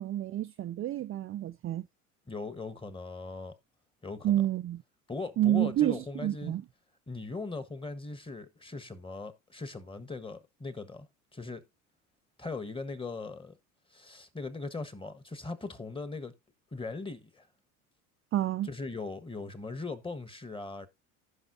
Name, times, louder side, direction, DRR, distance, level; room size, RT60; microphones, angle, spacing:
voice 1, 0.0-1.9 4.2-4.8 5.4-6.6 18.3-18.7, right 13 dB, 30° right, 0.5 m, -29 dB
voice 2, 2.3-3.5 4.0-4.4 5.1-6.5 7.1-11.1 11.3-11.6 12.4-13.6 13.9-16.3 16.7-17.5 18.6-20.9, left 3 dB, 10° left, 1.4 m, -39 dB
15.5 x 5.7 x 2.7 m
hypercardioid pair, 80°, 42 cm